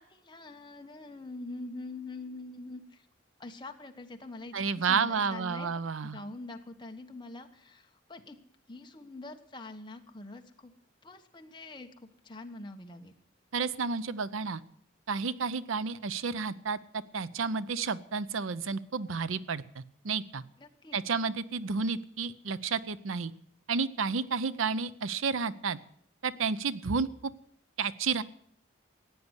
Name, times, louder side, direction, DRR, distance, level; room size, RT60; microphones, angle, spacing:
voice 1, 0.0-3.1 3.4-8.4 8.7-10.7 11.0-11.9 12.2-13.1 20.6-21.0, left 2 dB, 20° left, 5 dB, 1.2 m, -44 dB
voice 2, 4.5-6.2 13.5-14.6 15.1-20.4 20.9-23.3 23.7-25.8 26.2-27.3 27.8-28.2, right 5 dB, 80° right, 16 dB, 0.6 m, -31 dB
15.0 x 9.4 x 8.1 m, 0.65 s
head